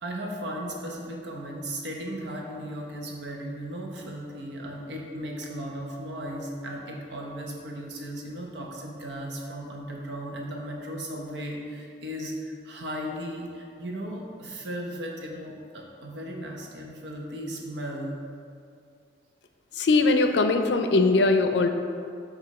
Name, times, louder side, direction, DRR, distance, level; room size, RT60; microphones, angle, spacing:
voice 1, 0.0-18.2, equal, 80° right, 0 dB, 0.9 m, -36 dB
voice 2, 19.7-21.7, left 3 dB, 80° left, 7 dB, 0.4 m, -21 dB
7.5 x 2.7 x 5.3 m, 2.4 s
head